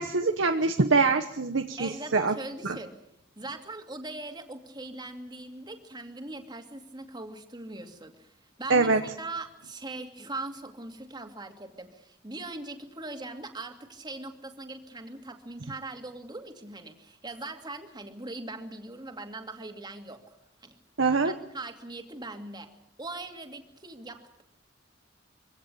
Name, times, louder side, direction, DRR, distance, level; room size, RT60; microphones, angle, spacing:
voice 1, 0.0-2.3 2.6-2.8 8.7-9.0 21.0-21.3, right 4 dB, 85° right, 5 dB, 1.2 m, -24 dB
voice 2, 1.8-2.9 3.4-20.4 20.6-20.8 21.2-22.7 23.0-24.4, right 2 dB, 25° right, 5 dB, 2.4 m, -40 dB
23.5 x 17.0 x 8.5 m, 0.78 s
head